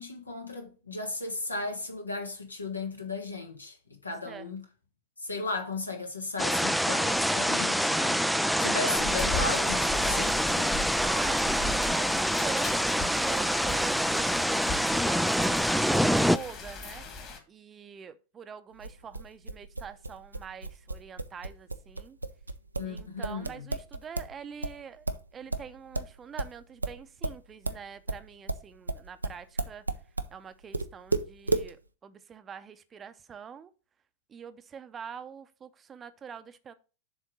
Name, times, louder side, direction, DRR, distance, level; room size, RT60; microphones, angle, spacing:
voice 1, 0.0-4.6 5.2-10.8 22.8-23.7, left 3 dB, 80° left, 1.5 m, -36 dB
sound 1, 6.4-16.4, equal, ahead, 0.3 m, -26 dB
sound 2, 9.0-17.4, left 3 dB, 35° left, 1.9 m, -38 dB
voice 2, 11.0-17.1 17.5-22.2 22.8-25.1 25.3-29.8 30.3-33.7 34.3-36.7, right 7 dB, 20° right, 0.7 m, -44 dB
sound 3, 18.8-24.3 24.6-30.3 30.7-31.7, right 2 dB, 80° right, 0.6 m, -33 dB
7.0 x 3.7 x 6.2 m
figure-of-eight pair, 90°, 0 cm